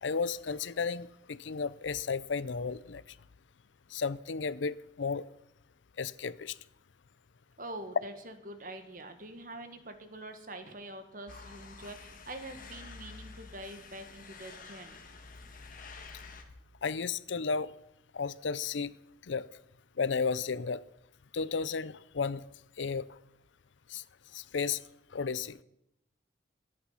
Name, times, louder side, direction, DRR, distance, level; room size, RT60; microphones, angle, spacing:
voice 1, 0.0-3.0 3.9-5.3 6.0-6.6 16.8-17.7 18.1-18.9 19.3-19.5 20.0-20.8 21.3-22.4 22.8-23.1 23.9-24.0 24.3-24.8 25.1-25.6, left 5 dB, 80° left, 0.6 m, -33 dB
voice 2, 7.6-15.0, right 1 dB, 45° right, 1.7 m, -45 dB
sound 1, 11.3-16.4, left 4 dB, 45° left, 1.7 m, -49 dB
22.5 x 8.6 x 5.7 m
head